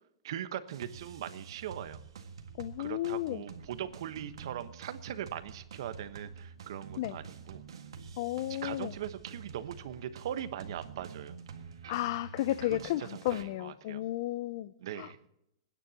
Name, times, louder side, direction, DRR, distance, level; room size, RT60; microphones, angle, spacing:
voice 1, 0.2-2.0 2.8-7.6 8.5-11.3 12.7-14.0 14.8-15.2, right 10 dB, 65° right, 11 dB, 1.1 m, -40 dB
sound 1, 0.7-13.4, right 5 dB, 85° right, 1.7 m, -48 dB
voice 2, 2.6-3.4 7.0-7.2 8.2-8.9 11.9-15.3, left 15 dB, 55° left, 15 dB, 0.5 m, -33 dB
28.5 x 9.9 x 2.9 m, 0.79 s
hypercardioid pair, 145°, 3 cm